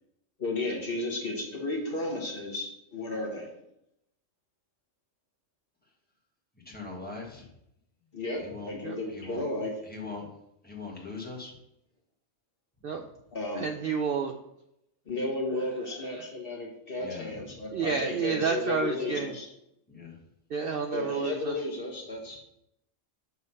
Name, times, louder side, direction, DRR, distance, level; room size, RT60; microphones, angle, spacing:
voice 1, 0.4-3.5 8.1-9.7 13.3-13.7 15.1-19.5 20.9-22.4, left 2 dB, 45° left, -1 dB, 1.5 m, -33 dB
voice 2, 6.6-7.5 8.3-8.7 9.1-9.4 9.8-10.3 10.6-11.5 17.0-17.4 19.9-20.2, left 3 dB, 10° left, -2 dB, 1.4 m, -41 dB
voice 3, 13.6-14.3 16.1-16.2 17.7-19.3 20.5-21.5, right 5 dB, 60° right, 4 dB, 0.6 m, -30 dB
6.8 x 3.2 x 5.5 m, 0.80 s
omnidirectional pair, 1.3 m